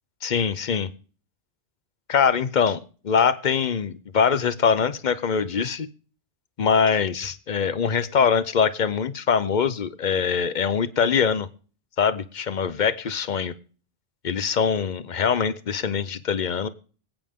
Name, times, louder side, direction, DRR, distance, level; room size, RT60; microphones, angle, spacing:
voice 1, 0.2-0.9 2.1-5.9 6.6-11.5 12.0-13.5 14.2-16.7, left 6 dB, 45° left, 14 dB, 0.8 m, -23 dB
25.5 x 8.9 x 3.7 m, 0.41 s
omnidirectional pair, 1.2 m